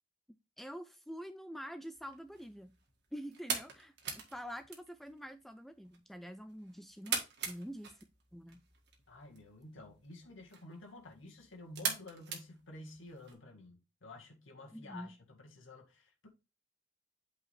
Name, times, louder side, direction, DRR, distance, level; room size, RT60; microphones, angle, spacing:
voice 1, 0.6-2.7 3.1-7.9 8.3-8.6 14.7-15.1, equal, ahead, 0.3 m, -46 dB
sound 1, 1.9-13.3, right 6 dB, 60° right, 1.7 m, -43 dB
voice 2, 9.1-16.3, left 2 dB, 80° left, 1.8 m, -51 dB
8.4 x 4.8 x 3.4 m
head